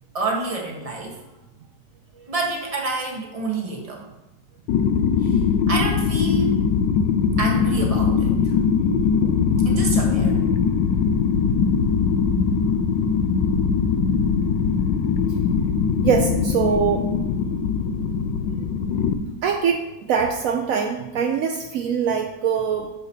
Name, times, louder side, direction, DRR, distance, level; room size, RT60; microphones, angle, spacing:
voice 1, 0.1-1.2 2.1-4.0 5.2-5.4 5.7-6.6 7.4-8.5 9.6-10.4, right 3 dB, 25° right, 0 dB, 1.0 m, -28 dB
sound 1, 4.7-19.1, left 6 dB, 80° left, 1.2 m, -21 dB
voice 2, 16.0-17.1 18.3-18.4 19.4-22.9, right 6 dB, 80° right, 4 dB, 0.7 m, -23 dB
8.6 x 6.6 x 2.8 m, 0.96 s
omnidirectional pair, 2.0 m